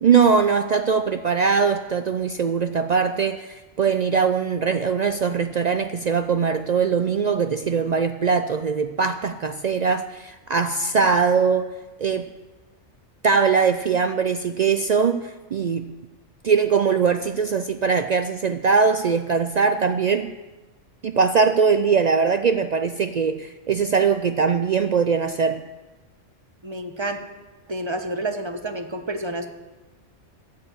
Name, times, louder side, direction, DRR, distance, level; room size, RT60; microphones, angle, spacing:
voice 1, 0.0-11.7 12.0-12.3 13.2-15.9 16.4-20.3 21.0-25.6, right 5 dB, 75° right, 9 dB, 0.3 m, -21 dB
voice 2, 26.6-27.2 27.7-29.5, right 1 dB, 25° right, 6 dB, 0.9 m, -29 dB
13.0 x 7.5 x 7.4 m, 1.2 s
omnidirectional pair, 1.3 m